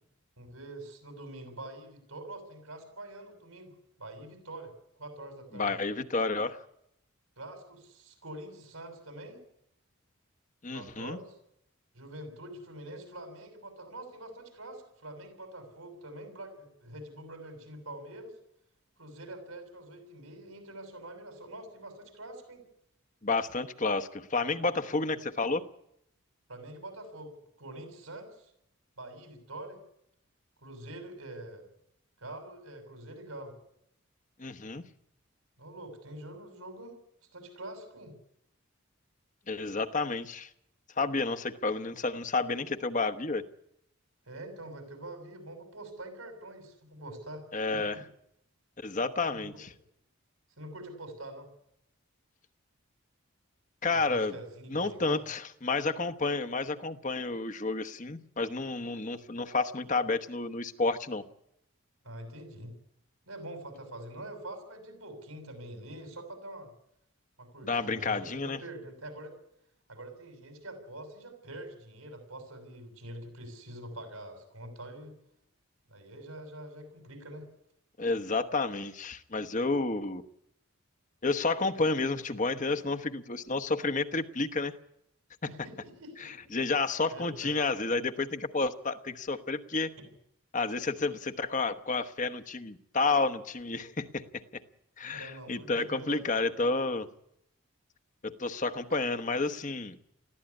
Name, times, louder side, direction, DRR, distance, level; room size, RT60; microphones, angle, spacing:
voice 1, 0.4-4.7 5.0-5.7 7.4-9.4 10.7-11.4 11.9-18.3 19.0-22.6 26.5-27.3 27.6-28.5 29.0-29.8 30.6-31.6 32.2-33.5 35.6-37.0 37.3-38.1 44.3-48.0 49.4-49.6 50.6-51.5 53.9-55.2 62.0-62.7 63.3-66.7 67.4-69.3 69.9-75.1 75.9-77.5 85.4-86.3 87.1-87.6 95.1-96.3 98.9-99.0, right 1 dB, 80° right, 7 dB, 7.1 m, -45 dB
voice 2, 5.5-6.6 10.6-11.2 23.2-25.6 34.4-34.8 39.5-40.5 41.0-43.4 47.5-48.0 48.8-49.7 53.8-54.3 54.7-61.2 67.6-68.6 78.0-80.2 81.2-84.7 86.2-89.9 90.5-94.4 95.0-97.1 98.2-100.0, left 3 dB, 35° left, 9 dB, 1.0 m, -30 dB
20.5 x 15.0 x 9.8 m, 0.77 s
head